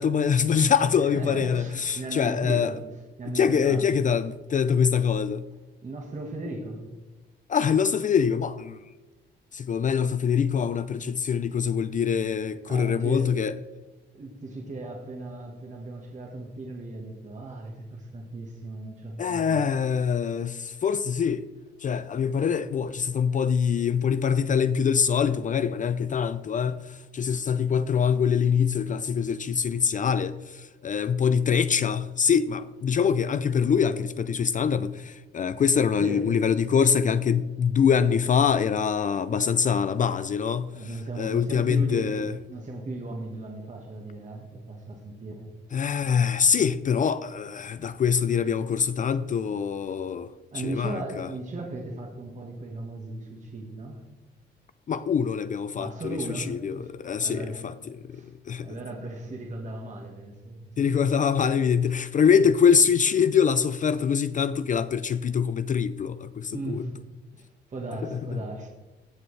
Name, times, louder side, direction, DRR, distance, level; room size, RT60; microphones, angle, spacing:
voice 1, 0.0-2.7 3.3-5.5 7.5-8.8 9.5-13.5 19.2-21.4 21.8-42.4 45.7-51.3 54.9-58.7 60.8-66.8 68.1-68.4, left 7 dB, 40° left, 0.4 m, -24 dB
voice 2, 1.0-2.8 3.2-3.9 5.8-6.8 12.7-13.3 14.1-19.6 36.0-36.3 39.9-40.1 40.7-45.5 50.5-54.0 55.8-57.6 58.1-58.3 58.6-60.8 66.5-67.0 67.3-68.7, right 2 dB, 40° right, 1.7 m, -37 dB
15.5 x 6.9 x 3.3 m
cardioid pair, 90°, 20 cm